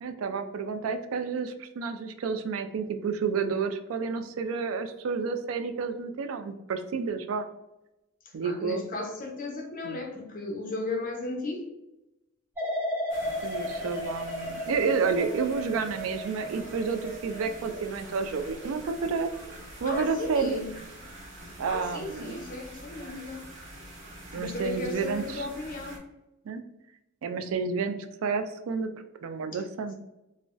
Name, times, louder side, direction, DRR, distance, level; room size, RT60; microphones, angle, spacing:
voice 1, 0.0-7.5 8.3-8.8 9.8-10.0 13.4-19.3 19.8-20.6 21.6-22.3 24.3-25.5 26.5-26.6 27.2-28.9 29.2-29.9, right 5 dB, 90° right, 0.3 m, -30 dB
voice 2, 8.4-11.7 19.8-20.7 21.7-23.4 24.3-26.0 29.5-29.6, left 2 dB, 45° left, 0.6 m, -35 dB
sound 1, 12.6-19.5 19.9-20.3, left 1 dB, 10° right, 0.7 m, -36 dB
sound 2, 13.1-26.0, right 1 dB, 60° right, 0.8 m, -46 dB
3.7 x 2.1 x 2.4 m
head